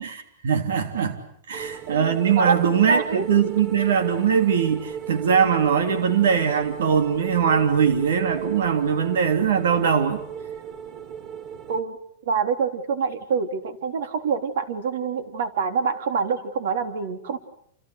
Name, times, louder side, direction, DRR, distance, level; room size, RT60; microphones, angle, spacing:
voice 1, 0.4-1.2 1.5-10.2, right 7 dB, 85° right, 8 dB, 3.3 m, -21 dB
sound 1, 1.5-11.8, right 8 dB, 30° right, 1.7 m, -36 dB
voice 2, 1.5-3.3 11.7-12.0 12.3-17.4, right 5 dB, 65° right, 9 dB, 3.7 m, -26 dB
29.0 x 28.5 x 6.8 m, 0.66 s
supercardioid pair, 170°, 0 cm